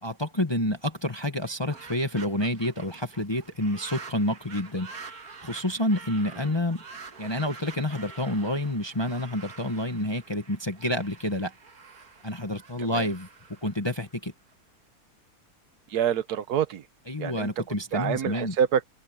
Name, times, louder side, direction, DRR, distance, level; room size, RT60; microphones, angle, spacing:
voice 1, 0.0-4.9 5.4-6.8 7.2-11.5 12.2-13.3 13.6-14.3 17.1-18.5, left 1 dB, 20° left, 1.3 m, -28 dB
sound 1, 1.4-14.5, right 4 dB, 70° right, 2.4 m, -47 dB
voice 2, 15.9-16.9 17.2-17.6 17.9-18.9, right 8 dB, 85° right, 1.4 m, -27 dB
omnidirectional pair, 1.6 m